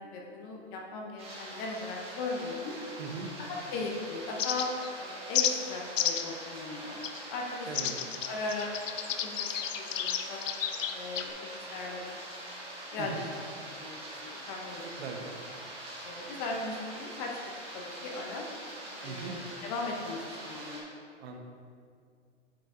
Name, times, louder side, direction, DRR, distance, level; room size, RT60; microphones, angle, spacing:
voice 1, 0.0-2.7 3.4-4.7 5.0-7.0 7.3-8.7 9.2-10.4 10.9-12.1 12.9-13.4 13.8-15.1 16.0-17.4 17.7-18.5 18.9-20.8, left 3 dB, 25° left, 0 dB, 0.5 m, -38 dB
sound 1, 1.2-20.8, right 1 dB, 15° right, 1.4 m, -44 dB
voice 2, 3.0-3.3 7.7-7.9 13.0-13.2 15.0-15.4 19.0-19.4 21.2-21.4, right 5 dB, 55° right, 3 dB, 1.0 m, -39 dB
sound 2, 4.4-4.9 5.3-5.5 6.0-6.3 7.0-7.2 7.7-11.3, left 9 dB, 85° left, 0.6 m, -31 dB
8.5 x 5.7 x 2.5 m, 2.2 s
hypercardioid pair, 140°, 37 cm